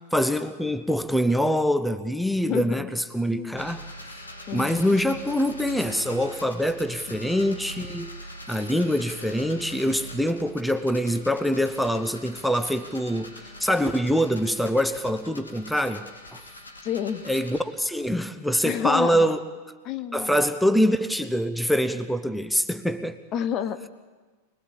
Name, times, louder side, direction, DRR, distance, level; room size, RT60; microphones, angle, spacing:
voice 1, 0.0-4.3 4.5-8.1 8.5-16.4 17.3-19.4 20.1-23.2, equal, ahead, 0.8 m, -25 dB
voice 2, 2.4-2.9 3.3-3.7 4.5-5.0 16.8-17.3 18.6-19.4 19.8-20.4 23.3-23.9, left 9 dB, 35° left, 0.9 m, -30 dB
sound 1, 3.6-17.6, left 1 dB, 80° left, 2.6 m, -43 dB
25.0 x 21.0 x 7.5 m
figure-of-eight pair, 90°, 0 cm